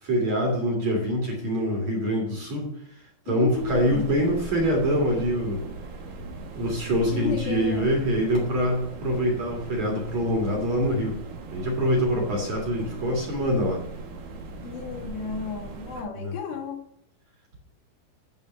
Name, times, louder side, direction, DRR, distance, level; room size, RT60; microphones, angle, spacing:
voice 1, 0.0-2.7 3.3-5.6 6.5-11.2 11.5-13.8 16.2-16.3, equal, 45° right, -1 dB, 2.7 m, -25 dB
voice 2, 3.3-4.1 7.1-8.0 14.6-16.8, left 6 dB, 75° left, -1 dB, 4.1 m, -33 dB
sound 1, 3.5-16.0, right 3 dB, 65° right, 2.9 m, -39 dB
12.0 x 4.2 x 7.1 m, 0.68 s
omnidirectional pair, 5.1 m